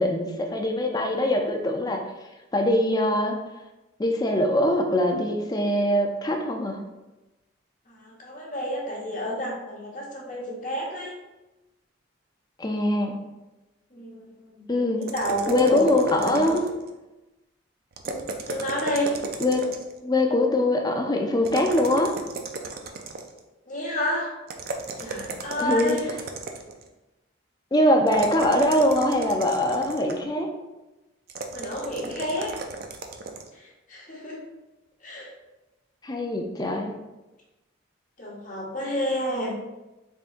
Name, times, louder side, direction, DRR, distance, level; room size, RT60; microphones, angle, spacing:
voice 1, 0.0-2.0 2.5-3.4 4.0-6.8 12.6-13.1 14.7-15.1 15.5-16.7 19.4-19.7 20.0-22.1 25.6-26.0 27.7-30.5 36.0-36.9, left 1 dB, 20° left, 3 dB, 0.4 m, -23 dB
voice 2, 7.9-11.1 13.9-14.7 15.0-16.6 18.0-19.1 23.7-24.3 25.0-26.0 31.5-32.5 33.5-34.4 35.0-35.3 38.2-39.6, equal, 40° left, -3 dB, 0.9 m, -30 dB
sound 1, 15.0-16.9 17.9-20.0 21.4-23.4 24.5-26.8 28.1-30.3 31.3-33.5, right 3 dB, 50° right, 0.4 m, -35 dB
4.0 x 3.5 x 2.5 m, 1.1 s
head